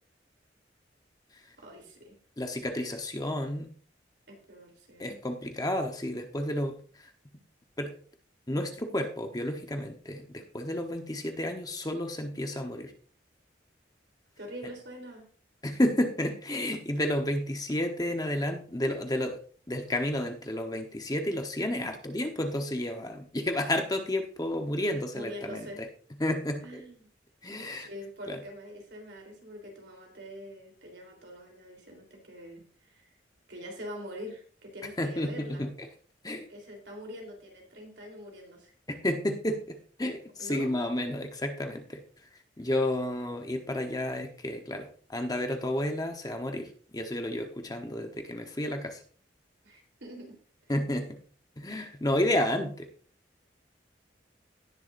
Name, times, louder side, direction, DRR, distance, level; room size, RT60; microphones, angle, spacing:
voice 1, 1.6-2.1 4.3-5.2 14.4-15.2 25.1-25.8 26.6-27.1 27.7-33.1 33.5-35.6 36.5-38.7 40.4-40.8 49.6-50.3, equal, 70° right, 1 dB, 3.5 m, -44 dB
voice 2, 2.4-3.7 5.0-7.1 7.8-7.9 8.5-12.9 15.6-19.4 19.7-25.9 26.2-26.8 27.4-27.9 28.3-28.4 35.0-35.9 36.2-36.5 38.9-42.0 42.6-49.0 50.7-51.2 51.6-52.9, left 1 dB, 20° left, 4 dB, 1.1 m, -31 dB
17.5 x 7.2 x 2.6 m, 0.43 s
head